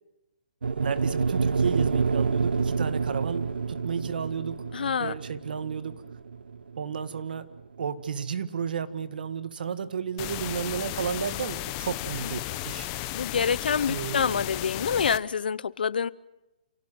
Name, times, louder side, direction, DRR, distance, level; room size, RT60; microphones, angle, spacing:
sound 1, 0.6-8.9, right 5 dB, 90° right, 1.2 m, -29 dB
voice 1, 0.7-4.6 5.0-6.0 6.8-7.5 7.8-12.9 13.9-14.4, right 7 dB, 65° right, 13 dB, 1.8 m, -32 dB
voice 2, 4.7-5.1 13.1-16.1, left 6 dB, 70° left, 20 dB, 0.9 m, -27 dB
sound 2, 10.2-15.2, left 16 dB, 25° left, 1.1 m, -34 dB
28.0 x 17.5 x 9.4 m, 0.95 s
hypercardioid pair, 155°, 5 cm